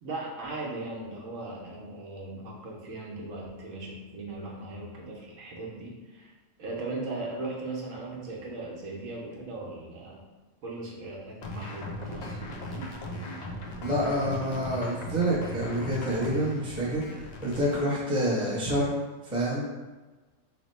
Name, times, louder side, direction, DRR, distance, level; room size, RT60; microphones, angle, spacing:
voice 1, 0.0-6.3 6.6-10.2 10.6-12.4 12.7-12.9 14.6-14.8, right 2 dB, 80° right, -3 dB, 1.1 m, -38 dB
sound 1, 11.4-17.8, left 1 dB, 70° left, 0.4 m, -38 dB
voice 2, 13.8-18.9 19.2-19.6, equal, 5° right, -7 dB, 0.6 m, -28 dB
3.2 x 2.1 x 4.1 m, 1.2 s
omnidirectional pair, 1.3 m